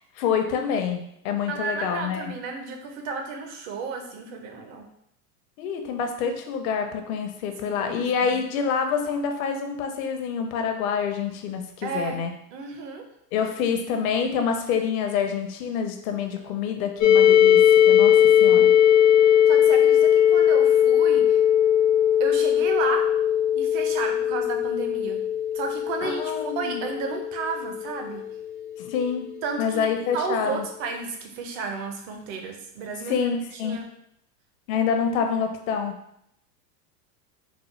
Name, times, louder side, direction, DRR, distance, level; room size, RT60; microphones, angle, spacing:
voice 1, 0.2-2.3 5.6-12.3 13.3-18.7 26.0-26.8 28.8-29.3 29.6-30.7 33.1-33.8 34.7-36.0, left 6 dB, 60° left, 4 dB, 0.8 m, -27 dB
voice 2, 1.5-4.9 7.6-8.4 11.8-12.2 12.5-13.0 19.2-21.4 22.2-23.1 23.5-25.2 25.5-28.3 29.4-29.9 30.1-33.3 33.6-33.8, right 4 dB, 45° right, 4 dB, 0.8 m, -33 dB
sound 1, 17.0-28.7, left 9 dB, 20° left, 0.3 m, -19 dB
4.1 x 2.1 x 3.1 m, 0.73 s
hypercardioid pair, 100°, 48 cm